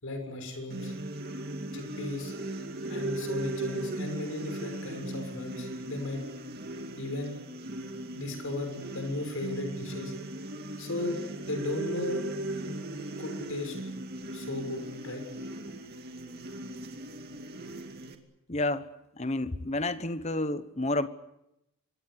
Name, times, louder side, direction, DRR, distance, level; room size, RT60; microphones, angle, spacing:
voice 1, 0.0-0.9 1.7-2.3 2.9-6.2 7.0-7.4 8.1-10.1 10.8-12.2 13.2-13.8 14.3-15.2, left 2 dB, 65° left, 6.7 m, -36 dB
sound 1, 0.7-18.1, right 1 dB, 45° right, 2.4 m, -38 dB
voice 2, 18.5-18.9 19.2-21.1, left 2 dB, 30° left, 1.1 m, -30 dB
26.0 x 21.5 x 8.0 m
head